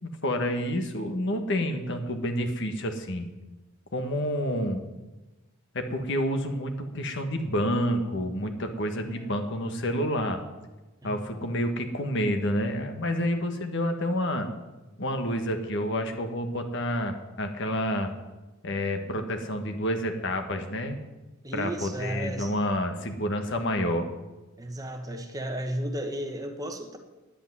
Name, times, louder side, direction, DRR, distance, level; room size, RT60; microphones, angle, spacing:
voice 1, 0.0-3.3 3.9-4.8 5.7-10.4 11.0-14.5 15.0-18.1 18.6-21.0 21.5-24.1, equal, 65° left, 6 dB, 1.5 m, -29 dB
voice 2, 9.0-9.5 11.0-11.2 21.4-22.5 24.6-27.0, right 1 dB, 20° right, 4 dB, 1.2 m, -34 dB
10.0 x 8.2 x 9.8 m, 1.1 s
head